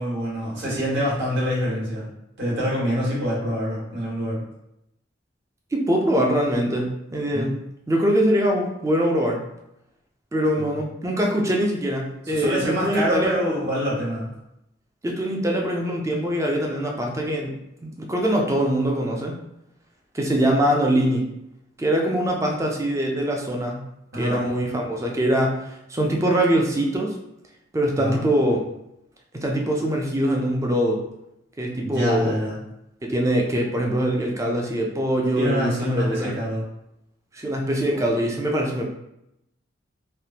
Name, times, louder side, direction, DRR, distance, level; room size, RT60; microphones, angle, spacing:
voice 1, 0.0-2.1 2.4-4.4 7.3-7.5 10.6-10.7 12.2-14.3 24.1-24.5 27.9-28.2 31.8-32.6 35.3-36.6 37.9-38.0, equal, 65° right, -6 dB, 1.4 m, -25 dB
voice 2, 5.7-7.6 7.9-9.4 10.3-13.4 15.0-17.5 17.8-19.4 20.1-21.2 21.8-23.8 24.1-25.6 25.9-27.1 27.7-28.6 29.3-31.0 31.6-32.3 33.0-36.3 37.3-38.8, right 1 dB, 15° right, 0 dB, 0.4 m, -23 dB
3.3 x 2.1 x 2.8 m, 0.83 s
head